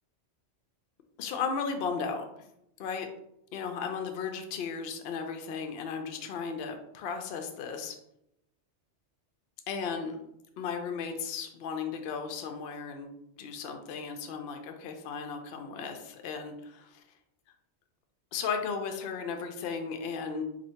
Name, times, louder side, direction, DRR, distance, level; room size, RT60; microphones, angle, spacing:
voice 1, 1.2-2.2 2.8-3.1 3.5-8.0 9.7-10.2 10.6-13.1 13.4-17.0 18.3-20.4, left 5 dB, 65° left, 5 dB, 0.7 m, -35 dB
2.8 x 2.7 x 4.2 m, 0.81 s
omnidirectional pair, 1.2 m